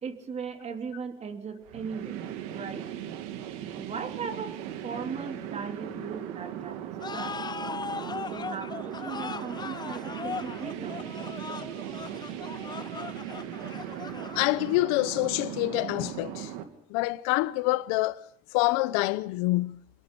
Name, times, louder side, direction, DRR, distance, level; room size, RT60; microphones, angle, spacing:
voice 1, 0.0-2.2 2.5-2.9 3.8-7.4 8.0-11.0, right 5 dB, 35° right, 3.0 m, -38 dB
sound 1, 1.7-16.6, right 11 dB, 90° right, 2.5 m, -38 dB
sound 2, 7.0-14.8, left 5 dB, 25° left, 0.9 m, -39 dB
voice 2, 14.4-16.5 16.9-18.2 18.5-19.8, left 20 dB, 85° left, 1.0 m, -26 dB
26.5 x 22.0 x 5.3 m
supercardioid pair, 100°, 18 cm